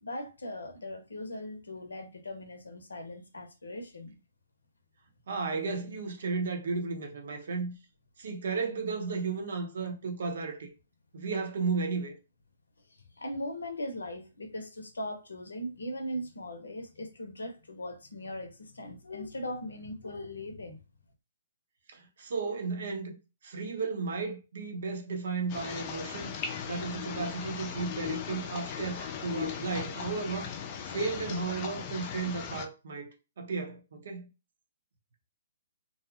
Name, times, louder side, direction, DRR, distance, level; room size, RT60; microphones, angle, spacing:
voice 1, 0.0-4.2 13.1-20.8, left 1 dB, 85° left, 0.6 m, -39 dB
voice 2, 5.3-7.7 8.2-10.7 11.1-12.2 21.9-23.2 23.4-26.3 26.7-30.5 30.8-34.3, right 4 dB, 65° right, 0.8 m, -34 dB
sound 1, 25.5-32.7, left 7 dB, 35° left, 0.4 m, -38 dB
2.6 x 2.1 x 2.7 m
hypercardioid pair, 135°, 0 cm